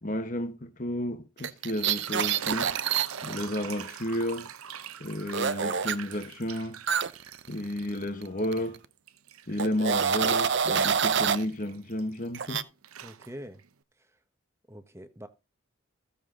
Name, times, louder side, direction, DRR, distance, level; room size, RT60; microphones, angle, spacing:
voice 1, 0.0-2.7 3.2-4.5 5.0-6.8 7.5-8.8 9.5-12.7, left 1 dB, 40° left, 1.4 m, -32 dB
sound 1, 1.4-3.4 5.3-6.0 6.9-8.3 8.5-8.8 9.6-11.4 12.3-12.6, right 7 dB, 55° right, 0.7 m, -27 dB
sound 2, 1.6-8.0 8.4-12.5 12.8-13.7, right 8 dB, 85° right, 0.8 m, -43 dB
voice 2, 13.0-13.6 14.0-14.2 14.7-15.3, equal, 10° right, 1.2 m, -44 dB
15.0 x 7.0 x 3.9 m
head